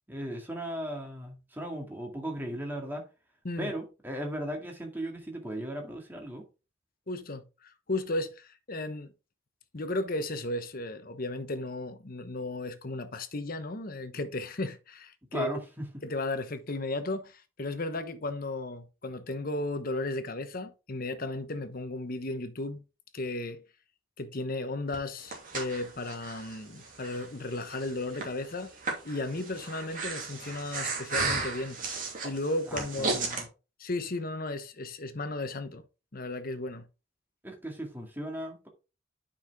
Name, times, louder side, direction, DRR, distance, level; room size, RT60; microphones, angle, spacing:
voice 1, 0.1-3.1 3.6-6.4 15.3-16.0 32.7-33.5 37.4-38.7, right 1 dB, 10° right, 2.0 m, -37 dB
voice 2, 7.1-9.1 9.7-15.6 16.0-22.8 23.1-23.6 24.2-28.7 29.0-31.8 32.2-33.4 33.8-35.8 36.1-36.9, left 2 dB, 45° left, 1.0 m, -35 dB
Breathing, 24.9-33.4, right 4 dB, 45° right, 2.7 m, -35 dB
9.3 x 5.7 x 3.6 m
head